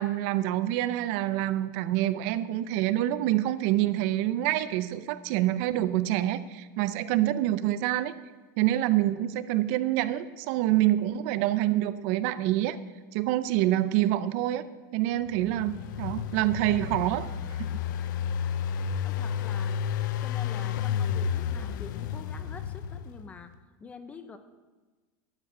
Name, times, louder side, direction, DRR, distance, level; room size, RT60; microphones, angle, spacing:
voice 1, 0.0-8.1 8.6-12.8 13.1-14.6 14.9-17.3 17.6-17.7, right 14 dB, 50° right, 14 dB, 0.5 m, -26 dB
Engine, 15.3-23.3, left 8 dB, 85° left, 0.6 m, -31 dB
voice 2, 19.0-19.8 20.2-23.5 23.8-24.4, left 4 dB, 15° left, 10 dB, 0.6 m, -46 dB
10.5 x 7.5 x 8.1 m, 1.3 s
supercardioid pair, 175°, 10 cm